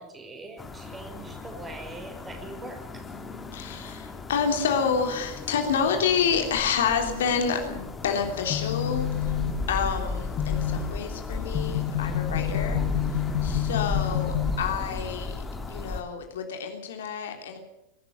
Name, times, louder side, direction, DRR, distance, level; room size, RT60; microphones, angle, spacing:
voice 1, 0.0-3.0 12.8-12.9 13.9-14.5, right 2 dB, 15° right, 4 dB, 5.3 m, -43 dB
sound 1, 0.6-16.0, left 3 dB, 15° left, 2.6 m, -35 dB
voice 2, 3.5-9.4 9.7-12.8 13.4-15.4 15.7-17.6, left 6 dB, 60° left, 4 dB, 3.2 m, -28 dB
sound 2, 8.2-15.1, left 10 dB, 35° left, 1.4 m, -30 dB
22.0 x 13.0 x 9.5 m, 0.84 s
figure-of-eight pair, 90°, 0 cm